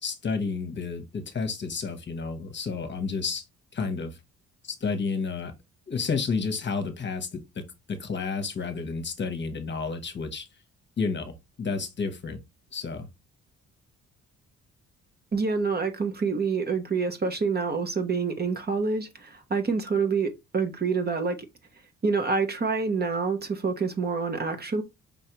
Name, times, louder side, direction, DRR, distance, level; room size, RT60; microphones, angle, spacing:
voice 1, 0.0-3.4 3.7-4.2 4.6-5.5 5.9-7.6 7.9-10.5 11.0-12.4 12.7-13.1, left 4 dB, 35° left, 1.1 m, -31 dB
voice 2, 15.3-21.5 22.0-24.8, right 4 dB, 30° right, 1.1 m, -27 dB
5.4 x 3.2 x 2.9 m
cardioid pair, 90°, 30 cm